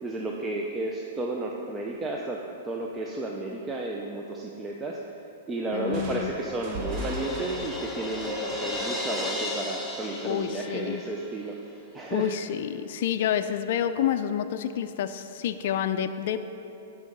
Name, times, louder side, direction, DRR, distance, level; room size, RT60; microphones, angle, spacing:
voice 1, 0.0-2.4 2.6-5.0 5.5-11.6 11.9-12.3, right 2 dB, 15° right, -1 dB, 0.6 m, -32 dB
Crash cymbal, 5.6-11.3, left 2 dB, 10° left, 1.0 m, -35 dB
voice 2, 5.7-6.3 10.2-11.0 12.1-16.4, left 9 dB, 60° left, 8 dB, 0.4 m, -28 dB
sound 1, 5.9-9.6, equal, 35° right, 1.2 m, -39 dB
11.0 x 4.8 x 5.4 m, 2.9 s
hypercardioid pair, 140°, 0 cm